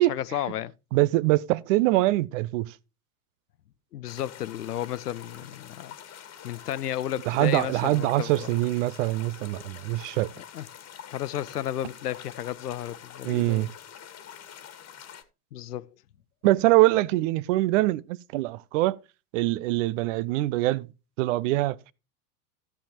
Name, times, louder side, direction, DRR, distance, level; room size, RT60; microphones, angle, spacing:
voice 1, 0.1-0.7 3.9-5.9 6.4-8.5 10.4-10.7 11.1-13.7 15.5-15.9, left 11 dB, 85° left, 0.7 m, -33 dB
voice 2, 0.9-2.8 7.3-10.3 13.2-13.7 16.4-19.0 19.3-20.9 21.2-21.9, right 18 dB, 55° right, 0.7 m, -24 dB
sound 1, 4.1-15.2, left 9 dB, 35° left, 1.7 m, -46 dB
14.5 x 7.0 x 3.0 m
hypercardioid pair, 90°, 45 cm